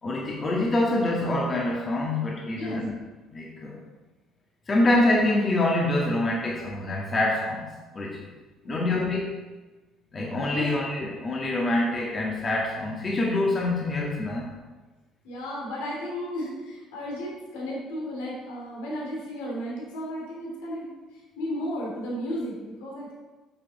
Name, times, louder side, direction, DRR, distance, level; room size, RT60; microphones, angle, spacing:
voice 1, 0.0-2.9 3.3-3.8 4.7-7.6 7.9-8.3 8.6-9.2 10.1-14.5, left 2 dB, 35° left, -3 dB, 1.7 m, -25 dB
voice 2, 8.6-9.0 10.5-10.7 15.2-20.9 21.4-23.1, equal, 85° left, -4 dB, 2.8 m, -34 dB
8.7 x 7.0 x 4.1 m, 1.2 s
supercardioid pair, 75°, 0 cm